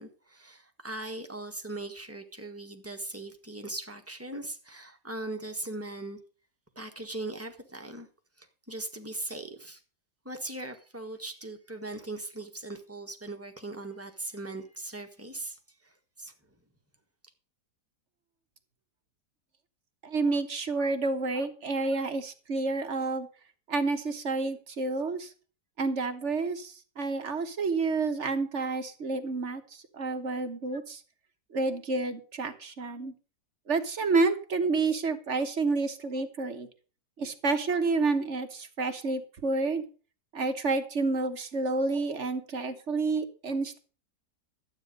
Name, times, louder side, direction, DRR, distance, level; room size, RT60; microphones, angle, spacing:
voice 1, 0.0-6.2 6.7-8.1 8.4-9.8 10.2-16.3, right 2 dB, 10° right, 1.4 m, -39 dB
voice 2, 20.0-23.3 23.7-25.3 25.8-31.0 31.5-33.1 33.7-36.7 37.2-39.8 40.3-43.8, right 3 dB, 50° right, 1.4 m, -29 dB
12.5 x 8.9 x 5.2 m
omnidirectional pair, 1.7 m